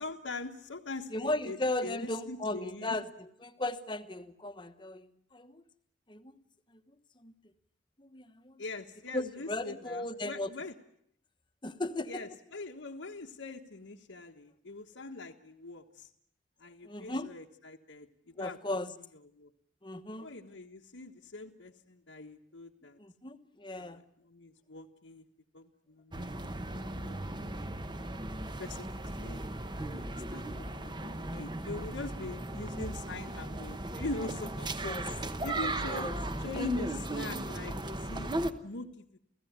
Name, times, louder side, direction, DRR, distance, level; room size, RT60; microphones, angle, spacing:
voice 1, 0.0-3.0 8.6-10.7 12.1-16.1 16.6-18.6 19.3-19.5 20.2-23.0 23.8-25.2 25.5-26.3 26.7-27.2 27.4-27.9 28.6-29.4 29.9-35.0 35.4-36.1 36.4-38.3 38.6-39.0, left 2 dB, 80° left, 1.4 m, -43 dB
voice 2, 1.1-5.6 6.1-6.4 6.7-6.8 7.2-7.3 8.0-8.6 9.1-10.5 11.6-12.2 16.8-17.3 18.3-18.9 19.8-20.3 23.0-24.0 34.8-35.1 35.6-36.1, left 2 dB, 25° left, 1.1 m, -36 dB
sound 1, 26.1-38.5, right 1 dB, 25° right, 1.0 m, -36 dB
30.0 x 16.5 x 9.5 m
head